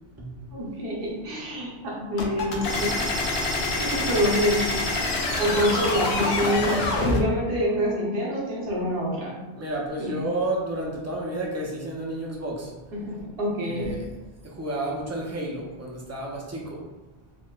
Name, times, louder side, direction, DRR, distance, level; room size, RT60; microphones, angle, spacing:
voice 1, 0.5-3.1 3.8-4.7 5.4-9.4 10.0-10.1 12.9-13.9, equal, 65° right, -5 dB, 1.0 m, -26 dB
sound 1, 2.2-7.2, left 2 dB, 75° left, 0.8 m, -26 dB
voice 2, 9.6-12.7 13.6-14.1 14.6-16.8, right 1 dB, 25° right, -2 dB, 0.3 m, -31 dB
4.4 x 2.1 x 2.3 m, 1.1 s
omnidirectional pair, 1.1 m